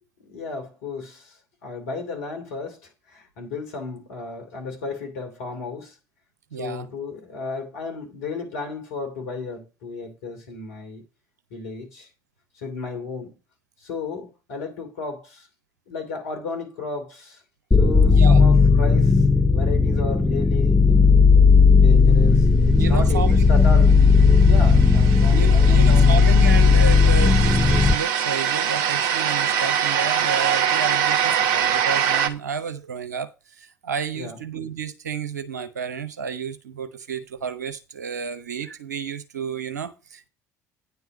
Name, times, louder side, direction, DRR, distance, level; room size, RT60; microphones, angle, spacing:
voice 1, 0.2-6.0 6.6-11.0 11.5-12.1 12.6-13.4 13.8-15.5 15.9-17.4 17.8-19.3 19.5-21.3 21.7-24.0 24.4-26.2 34.1-34.4, left 4 dB, 70° left, 2.8 m, -34 dB
voice 2, 6.5-6.9 18.1-18.4 22.8-23.5 25.2-40.3, right 6 dB, 80° right, 0.8 m, -31 dB
sound 1, 17.7-27.9, left 4 dB, 10° left, 0.7 m, -15 dB
sound 2, 23.9-32.3, right 8 dB, 60° right, 1.1 m, -24 dB
9.7 x 4.7 x 5.9 m
figure-of-eight pair, 55°, 9 cm